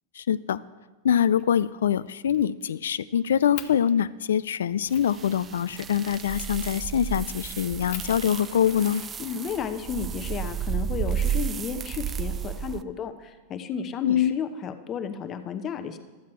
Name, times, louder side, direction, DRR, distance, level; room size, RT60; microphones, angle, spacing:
voice 1, 0.2-0.6 1.0-9.0 14.0-14.4, left 9 dB, 80° left, 17 dB, 0.3 m, -24 dB
Fire, 1.4-1.7 2.1-3.0 3.5-3.7 4.3-4.4 4.9-5.1 6.6-6.9 7.4-7.5 7.9-9.7 10.7-11.7, left 12 dB, 60° left, 0.8 m, -43 dB
sound 1, 4.9-12.8, right 9 dB, 30° right, 0.4 m, -32 dB
voice 2, 9.2-16.0, left 7 dB, 35° left, 8 dB, 0.8 m, -33 dB
12.5 x 7.5 x 4.4 m, 1.3 s
hypercardioid pair, 100°, 0 cm